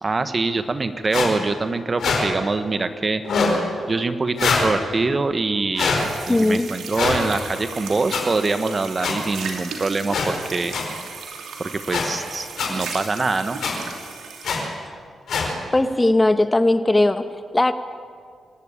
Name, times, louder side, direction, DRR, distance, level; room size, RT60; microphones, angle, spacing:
voice 1, 0.0-3.2 3.9-10.7 11.6-13.6, right 3 dB, 40° right, 10 dB, 1.4 m, -24 dB
sound 1, 1.1-1.3 2.0-2.2 3.2-3.6 4.4-4.7 5.7-6.0 6.9-7.2 8.1-8.2 9.0-9.1 10.1-10.3 10.7-10.8 11.9-12.0 12.6-12.7 13.6-13.7 14.4-14.6 15.3-15.5, left 5 dB, 75° left, 4.5 m, -22 dB
sound 2, 6.0-14.7, right 5 dB, 80° right, 2.9 m, -36 dB
voice 2, 6.3-6.7 15.7-17.7, left 2 dB, 20° left, 10 dB, 1.2 m, -18 dB
26.0 x 12.0 x 8.8 m, 2.1 s
supercardioid pair, 50°, 0 cm